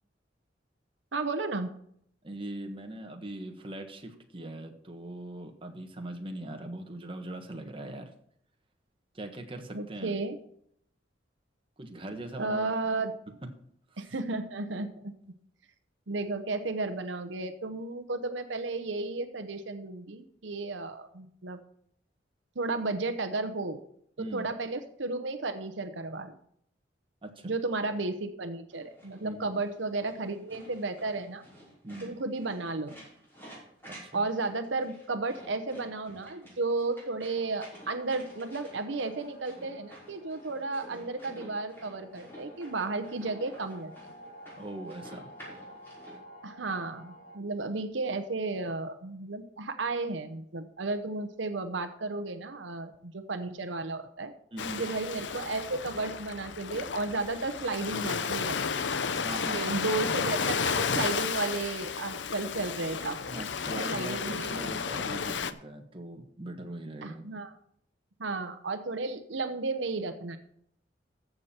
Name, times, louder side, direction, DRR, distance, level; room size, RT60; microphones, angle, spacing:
voice 1, 1.1-1.7 9.7-10.4 12.4-13.2 14.0-15.1 16.1-21.6 22.6-23.8 24.2-26.3 27.4-31.4 32.0-33.0 34.1-43.9 46.4-54.3 54.8-58.8 59.5-63.4 63.9-64.5 67.0-67.5 68.2-70.4, right 3 dB, 80° right, 9 dB, 0.9 m, -33 dB
voice 2, 2.2-8.1 9.1-10.2 11.8-12.7 13.9-14.1 24.2-24.5 27.2-27.5 29.2-29.5 31.8-32.2 33.9-34.3 44.6-45.3 54.5-54.9 59.1-60.5 63.3-67.3, right 1 dB, 30° right, 3 dB, 1.4 m, -41 dB
sound 1, 28.7-46.2, equal, 10° left, 5.5 m, -52 dB
sound 2, 37.4-47.4, equal, 45° left, 1.7 m, -51 dB
Ocean, 54.6-65.5, left 6 dB, 70° left, 0.7 m, -32 dB
14.5 x 7.1 x 4.4 m, 0.68 s
head